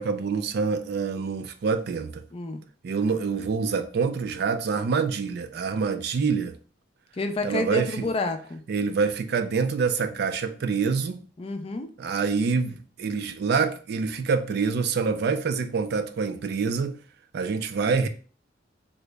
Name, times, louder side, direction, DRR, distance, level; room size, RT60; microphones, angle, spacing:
voice 1, 0.0-2.2 2.8-6.5 7.4-8.1 8.7-11.2 12.0-17.0 17.3-18.1, right 5 dB, 60° right, 0.4 m, -26 dB
voice 2, 2.3-2.6 7.1-8.6 11.4-11.9, left 3 dB, 30° left, 0.4 m, -29 dB
3.7 x 2.1 x 3.3 m
head